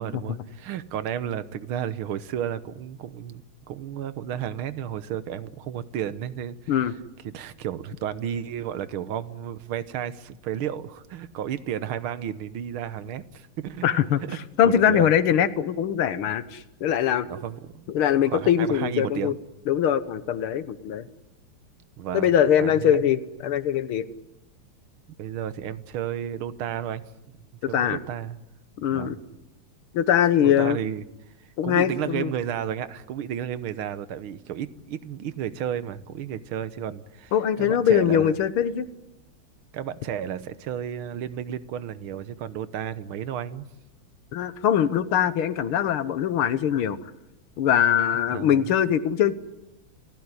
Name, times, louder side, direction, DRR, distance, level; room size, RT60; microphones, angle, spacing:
voice 1, 0.0-6.6 7.2-14.0 14.3-14.4 14.6-15.1 17.2-17.9 18.3-19.4 22.0-22.3 22.6-23.0 25.2-27.0 27.7-28.4 28.9-29.2 30.4-31.0 31.6-37.3 37.6-38.3 39.7-43.7 48.3-48.7, right 9 dB, 80° right, 14 dB, 1.9 m, -32 dB
voice 2, 13.8-17.3 17.9-19.3 19.7-21.1 22.1-24.0 27.6-28.0 28.8-29.2 29.9-30.8 31.6-32.3 37.3-38.9 44.3-47.0 47.6-49.3, left 9 dB, 90° left, 14 dB, 2.0 m, -22 dB
28.0 x 15.5 x 9.8 m, 0.95 s
omnidirectional pair, 2.3 m